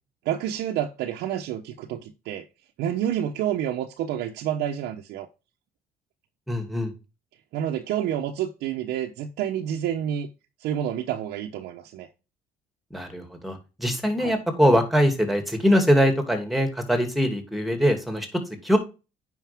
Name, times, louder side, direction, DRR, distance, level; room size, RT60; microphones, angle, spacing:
voice 1, 0.2-2.4 2.8-5.3 7.5-10.3 10.6-12.1 14.2-14.3, right 10 dB, 90° right, 1.0 m, -29 dB
voice 2, 6.5-6.9 12.9-18.8, equal, ahead, 2.7 m, -22 dB
9.4 x 5.6 x 3.5 m
cardioid pair, 105°, 16 cm